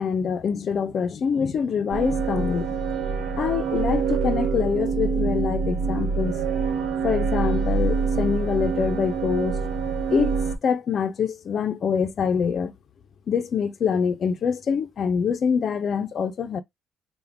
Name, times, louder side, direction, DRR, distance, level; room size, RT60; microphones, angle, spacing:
voice 1, 0.0-2.8 3.4-6.4 7.0-9.6 10.1-10.3 10.6-12.7 13.3-16.6, left 6 dB, 45° left, 0.4 m, -25 dB
sound 1, 1.9-10.6, right 5 dB, 85° right, 0.8 m, -25 dB
3.4 x 2.1 x 3.4 m
cardioid pair, 140°, 0 cm